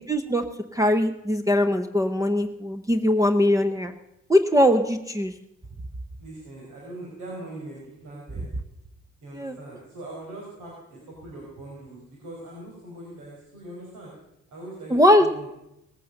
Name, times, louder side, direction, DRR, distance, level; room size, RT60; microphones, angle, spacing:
voice 1, 0.1-0.4 0.7-3.9 4.3-5.3 9.3-9.5 14.9-15.3, left 1 dB, 10° right, 8 dB, 0.9 m, -21 dB
voice 2, 6.2-8.4 9.2-14.1 14.5-15.5, right 1 dB, 80° right, -3 dB, 4.7 m, -41 dB
19.0 x 8.5 x 6.5 m, 0.85 s
cardioid pair, 90°, 30 cm